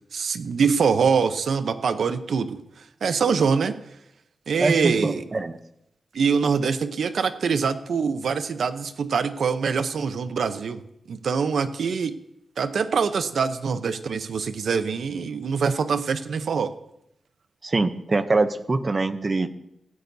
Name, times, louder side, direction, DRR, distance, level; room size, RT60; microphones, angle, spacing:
voice 1, 0.1-2.6 3.0-3.8 4.5-5.2 6.1-10.8 11.1-12.1 12.6-16.7, right 5 dB, 75° right, 11 dB, 0.8 m, -24 dB
voice 2, 4.6-5.6 17.6-19.5, right 3 dB, 30° right, 11 dB, 0.7 m, -24 dB
16.5 x 16.0 x 2.8 m, 0.80 s
wide cardioid pair, 160°, 0 cm